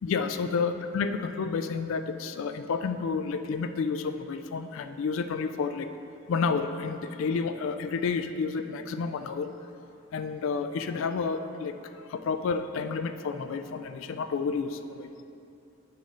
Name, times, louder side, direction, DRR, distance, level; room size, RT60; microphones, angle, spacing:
voice 1, 0.0-5.9 6.3-9.5 10.1-15.1, left 5 dB, 70° left, 8 dB, 0.3 m, -30 dB
8.1 x 3.8 x 5.5 m, 2.7 s
head